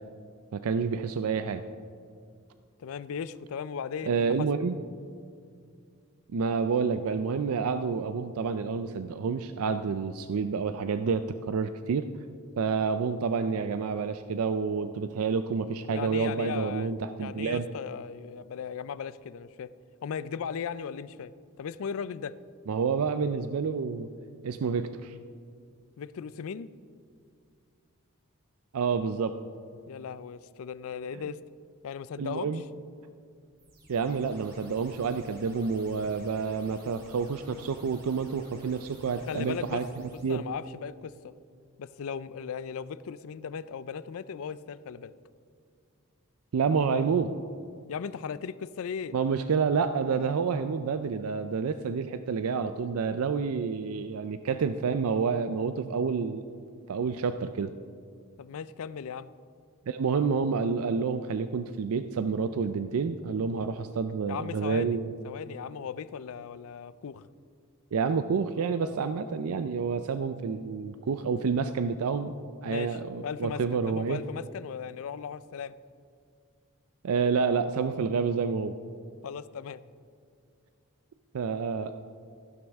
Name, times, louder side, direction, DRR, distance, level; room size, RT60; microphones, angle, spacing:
voice 1, 0.5-1.6 4.0-4.8 6.3-12.1 12.6-17.7 22.7-24.1 24.4-25.2 28.7-29.4 32.2-32.6 33.9-40.4 46.5-47.3 49.1-57.7 59.9-65.0 67.9-72.3 72.6-74.2 77.0-78.8 81.3-81.9, right 5 dB, 70° right, 10 dB, 0.4 m, -29 dB
voice 2, 2.8-4.5 15.9-16.9 17.2-19.7 20.0-21.3 21.6-22.3 26.0-26.7 29.9-31.4 31.8-32.5 39.3-39.8 40.1-41.3 41.8-45.1 47.9-49.1 58.4-59.3 64.3-65.0 65.2-67.3 72.7-73.0 73.2-75.8 79.2-79.8, left 7 dB, 65° left, 16 dB, 0.4 m, -37 dB
sound 1, 33.6-40.4, right 1 dB, 45° right, 2.3 m, -52 dB
14.5 x 11.5 x 3.5 m, 2.3 s
head